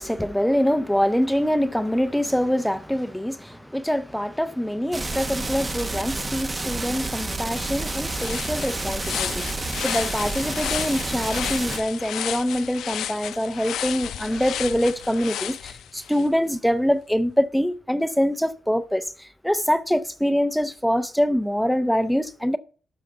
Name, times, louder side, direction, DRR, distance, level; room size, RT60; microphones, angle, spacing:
voice 1, 0.0-22.6, equal, ahead, 0.6 m, -24 dB
sound 1, 4.9-11.8, right 2 dB, 20° right, 1.4 m, -30 dB
sound 2, 7.1-7.2 7.5-16.3, left 11 dB, 90° left, 0.4 m, -33 dB
12.5 x 4.8 x 6.7 m
cardioid pair, 155°, 0 cm